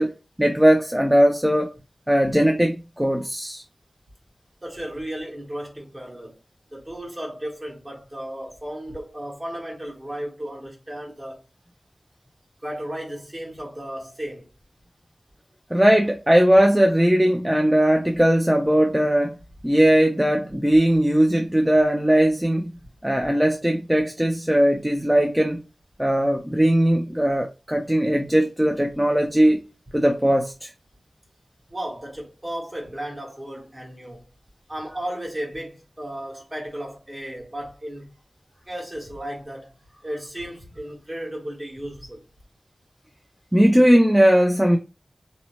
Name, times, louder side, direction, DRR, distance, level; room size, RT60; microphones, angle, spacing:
voice 1, 0.0-1.7 2.1-3.6 15.7-19.4 19.6-22.7 23.0-25.6 26.0-29.7 29.9-30.7 43.5-44.8, equal, 10° right, 0.3 m, -19 dB
voice 2, 4.6-6.4 6.7-11.4 12.6-14.5 31.7-34.3 34.7-38.1 38.7-39.7 40.0-42.2, right 1 dB, 30° right, 1.2 m, -34 dB
2.7 x 2.0 x 2.8 m
wide cardioid pair, 70°, 0 cm